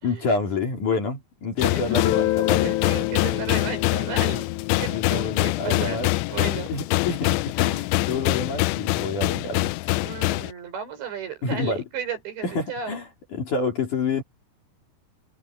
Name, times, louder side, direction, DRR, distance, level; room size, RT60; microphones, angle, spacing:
voice 1, 0.0-2.8 4.9-6.1 6.7-9.7 11.4-11.8 12.4-14.2, left 4 dB, 45° left, 4.5 m, -28 dB
sound 1, 1.6-10.5, left 21 dB, 85° left, 2.5 m, -25 dB
voice 2, 1.6-2.0 2.6-4.5 4.8-6.7 10.0-13.0, right 7 dB, 65° right, 7.5 m, -34 dB
Guitar, 1.9-7.4, left 16 dB, 70° left, 3.9 m, -29 dB
omnidirectional pair, 5.5 m